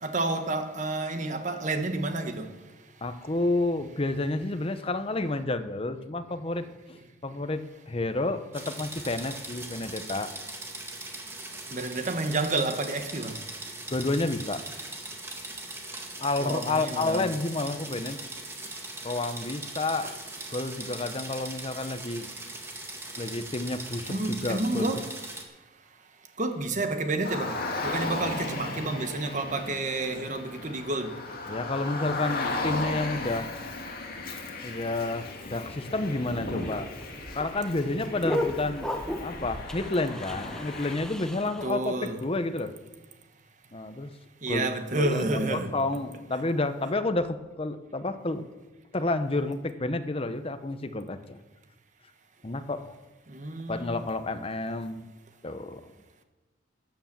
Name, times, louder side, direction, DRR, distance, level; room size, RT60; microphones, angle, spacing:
voice 1, 0.0-2.5 11.7-13.4 16.4-17.3 24.1-25.1 26.4-27.5 27.8-31.1 41.6-42.2 44.4-45.7 53.3-54.0, right 2 dB, 40° right, 1.2 m, -30 dB
voice 2, 3.0-10.3 13.9-14.6 16.2-18.2 19.0-20.1 20.5-22.3 23.2-24.9 28.2-28.3 31.5-33.5 34.6-36.9 37.3-38.9 39.2-41.9 42.2-42.7 43.7-44.1 44.5-44.7 45.0-48.4 48.9-51.4 52.4-53.0 53.7-55.1 55.4-55.8, left 2 dB, 30° left, 0.8 m, -30 dB
teletype fast speed, 8.5-25.4, right 2 dB, 10° right, 1.6 m, -40 dB
Car, 27.2-40.9, left 2 dB, 50° left, 2.4 m, -36 dB
sound 1, 36.1-41.7, left 1 dB, 5° left, 1.1 m, -35 dB
13.0 x 9.4 x 7.4 m
head